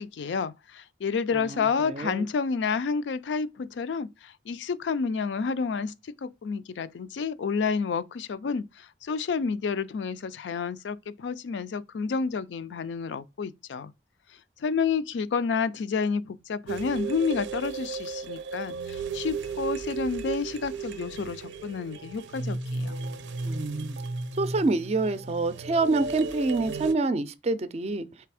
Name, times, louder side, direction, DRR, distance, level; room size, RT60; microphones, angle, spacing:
voice 1, 0.0-13.9 14.6-23.0, left 5 dB, 80° left, 0.4 m, -30 dB
voice 2, 1.5-2.3 23.5-24.0 24.4-28.1, right 3 dB, 35° right, 0.4 m, -27 dB
sound 1, 16.7-26.9, right 4 dB, 90° right, 0.5 m, -34 dB
3.4 x 3.3 x 4.8 m
head